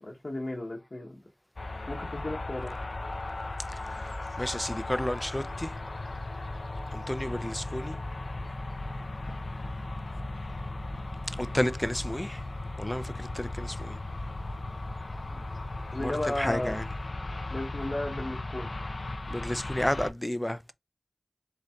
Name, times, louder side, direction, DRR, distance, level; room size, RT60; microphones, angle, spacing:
voice 1, 0.0-1.2 1.9-2.8 15.2-15.4 15.9-16.8 17.5-18.7, left 1 dB, 70° left, 0.8 m, -34 dB
sound 1, 1.6-20.1, left 2 dB, 85° left, 0.4 m, -36 dB
voice 2, 3.7-5.8 6.9-8.0 11.4-12.4 12.8-14.0 16.0-16.8 19.3-20.7, left 1 dB, 20° left, 0.4 m, -32 dB
4.2 x 3.8 x 2.3 m
wide cardioid pair, 40°, 0 cm